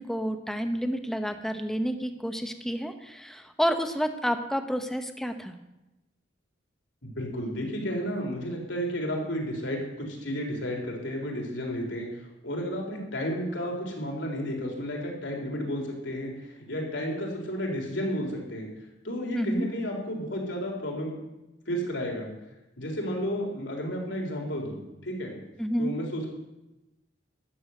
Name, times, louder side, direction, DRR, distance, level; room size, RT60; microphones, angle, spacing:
voice 1, 0.0-5.5 19.3-19.7 25.6-25.9, equal, ahead, 7 dB, 0.9 m, -29 dB
voice 2, 7.0-12.1 12.4-18.7 19.0-21.2 21.7-22.3 22.8-25.3 25.8-26.3, equal, 75° left, 0 dB, 3.7 m, -32 dB
13.0 x 7.1 x 9.4 m, 0.98 s
head